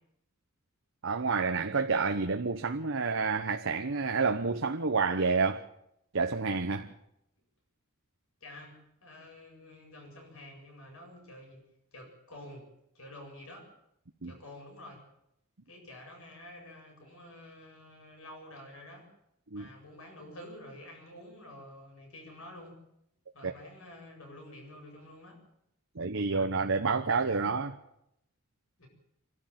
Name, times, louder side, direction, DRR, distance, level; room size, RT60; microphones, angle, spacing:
voice 1, 1.0-5.7 6.1-6.9 14.2-14.3 19.5-19.7 23.4-23.5 25.9-27.8, right 4 dB, 65° right, 1.1 m, -29 dB
voice 2, 8.4-8.8 9.0-11.6 11.9-12.7 12.9-13.7 14.2-15.0 15.7-19.1 19.5-22.8 23.3-25.4 28.8-28.9, left 1 dB, 70° left, 7.8 m, -49 dB
28.0 x 12.0 x 9.1 m
head